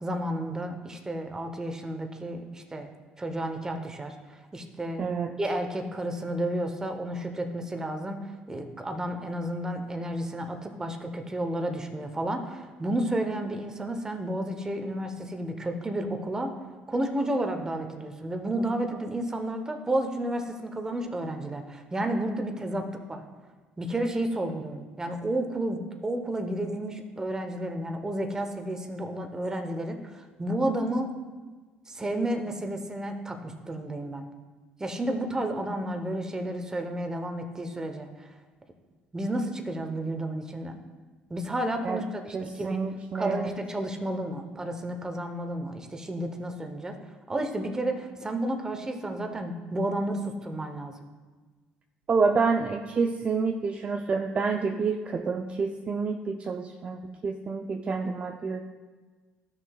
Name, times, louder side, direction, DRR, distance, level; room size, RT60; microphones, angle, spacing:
voice 1, 0.0-2.9 3.2-5.1 5.4-16.5 16.9-23.2 23.8-31.1 31.9-34.3 34.8-38.3 39.1-40.8 41.3-42.8 43.1-47.0 47.3-50.9, right 1 dB, 15° right, 5 dB, 1.0 m, -31 dB
voice 2, 5.0-5.3 41.8-42.0 42.3-43.5 52.1-58.6, right 4 dB, 35° right, 3 dB, 0.5 m, -28 dB
13.0 x 6.4 x 2.4 m, 1.4 s
supercardioid pair, 90°, 3 cm